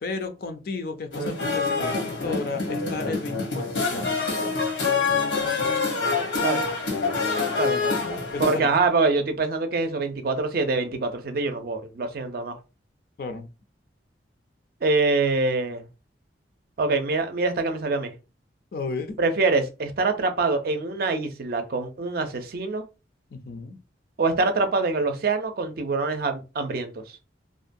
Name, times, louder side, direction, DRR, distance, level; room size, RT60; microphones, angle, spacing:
voice 1, 0.0-4.2 7.8-7.9 8.3-8.7 13.2-13.5 18.7-19.2 23.3-23.8, left 3 dB, 50° left, 0.4 m, -33 dB
sound 1, 1.1-8.6, left 4 dB, 80° left, 0.9 m, -26 dB
voice 2, 7.6-8.0 8.4-12.6 14.8-15.8 16.8-18.1 19.2-22.8 24.2-26.9, right 3 dB, 50° right, 0.4 m, -25 dB
2.5 x 2.2 x 2.5 m
head